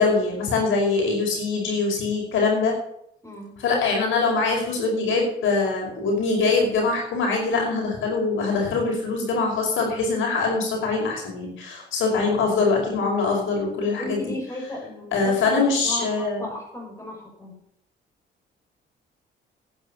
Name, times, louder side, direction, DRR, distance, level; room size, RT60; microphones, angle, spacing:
voice 1, 0.0-2.8 3.6-14.2 15.1-16.5, left 4 dB, 80° left, 0 dB, 5.2 m, -23 dB
voice 2, 3.2-3.5 13.9-17.6, left 2 dB, 15° left, -1 dB, 7.0 m, -35 dB
10.5 x 9.9 x 6.9 m, 0.71 s
cardioid pair, 90°, 20 cm